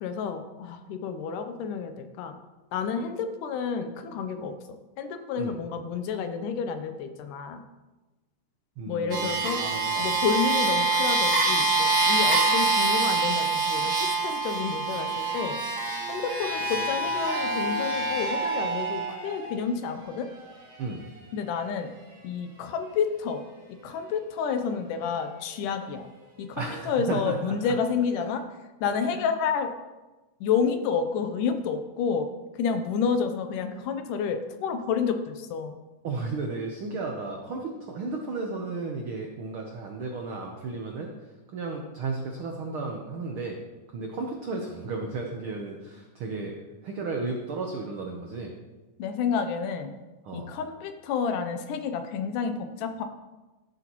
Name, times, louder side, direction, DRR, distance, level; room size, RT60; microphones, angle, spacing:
voice 1, 0.0-2.4 2.7-4.6 5.0-7.6 8.9-9.6 10.0-15.6 16.1-20.3 21.3-21.9 22.2-23.4 23.8-26.1 26.4-28.4 28.8-29.8 30.4-32.3 32.5-35.8 49.0-49.9 50.3-53.0, left 6 dB, 85° left, 7 dB, 2.3 m, -29 dB
voice 2, 8.8-10.1 20.8-21.1 26.6-27.7 29.1-29.3 36.0-43.6 43.9-46.5 46.8-48.5 50.2-50.5, right 3 dB, 85° right, 1 dB, 1.1 m, -34 dB
sound 1, 9.1-19.5 20.3-20.4, right 3 dB, 35° right, 1.9 m, -26 dB
13.0 x 7.8 x 3.0 m, 1.1 s
omnidirectional pair, 3.6 m